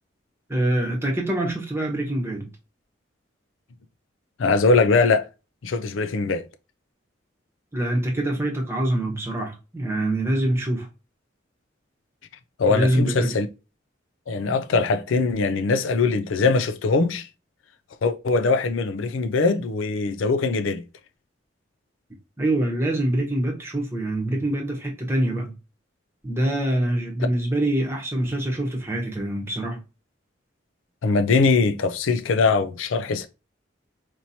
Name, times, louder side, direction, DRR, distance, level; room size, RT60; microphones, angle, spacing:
voice 1, 0.5-2.5 7.7-10.9 12.7-13.3 22.4-25.5 26.2-29.8, right 1 dB, 15° right, 1.0 m, -25 dB
voice 2, 4.4-5.3 5.6-6.5 12.6-13.5 14.3-17.3 18.0-20.8 31.0-33.3, left 4 dB, 90° left, 0.5 m, -21 dB
4.4 x 2.9 x 2.7 m
head